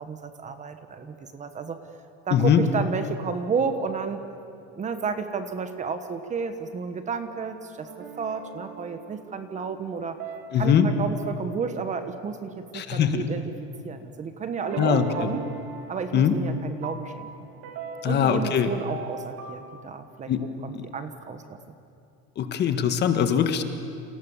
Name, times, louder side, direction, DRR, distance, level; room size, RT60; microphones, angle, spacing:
voice 1, 0.0-1.8 2.3-4.2 4.7-10.2 10.5-15.4 15.9-17.5 18.1-20.3 20.6-21.6, right 5 dB, 20° right, 9 dB, 1.3 m, -32 dB
voice 2, 2.3-2.6 10.5-10.9 12.7-13.3 14.8-15.3 16.1-16.3 18.0-18.7 20.3-20.4 20.7-20.9 22.4-23.6, left 8 dB, 30° left, 8 dB, 1.6 m, -22 dB
sound 1, 7.9-12.4 14.6-19.7, right 6 dB, 45° right, 3.0 m, -40 dB
29.0 x 28.0 x 7.2 m, 2.6 s
cardioid pair, 160°, 32 cm